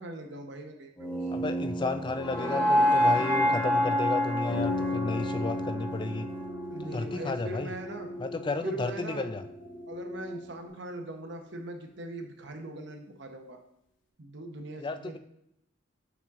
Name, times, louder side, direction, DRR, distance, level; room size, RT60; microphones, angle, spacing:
voice 1, 0.0-1.2 6.7-8.1 8.6-9.3 9.9-13.6 14.2-15.2, right 1 dB, 60° right, 4 dB, 0.9 m, -41 dB
sound 1, 1.0-7.1, equal, 5° left, 1.1 m, -28 dB
voice 2, 1.3-6.3 6.8-7.7 8.2-9.4 14.8-15.2, left 3 dB, 25° left, 10 dB, 0.3 m, -33 dB
sound 2, 4.3-10.7, left 1 dB, 20° right, 1.1 m, -44 dB
sound 3, 4.5-10.3, right 1 dB, 70° left, 1.0 m, -39 dB
7.1 x 4.4 x 3.6 m, 0.78 s
head